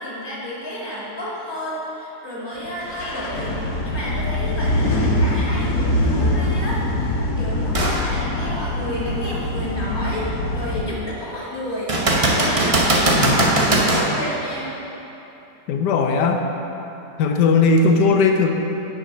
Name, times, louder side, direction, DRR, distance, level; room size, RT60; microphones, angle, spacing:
voice 1, 0.0-12.0 12.4-14.7, equal, 15° left, -7 dB, 1.9 m, -31 dB
sound 1, 2.8-10.8, left 1 dB, 60° left, 1.3 m, -23 dB
sound 2, 7.7-8.0 8.6-8.7 11.9-14.1 17.8-17.9, right 1 dB, 35° right, 0.6 m, -18 dB
voice 2, 13.2-13.7 15.7-16.4 17.2-18.5, left 4 dB, 80° left, 4 dB, 1.3 m, -18 dB
9.3 x 5.0 x 5.5 m, 3.0 s
omnidirectional pair, 1.8 m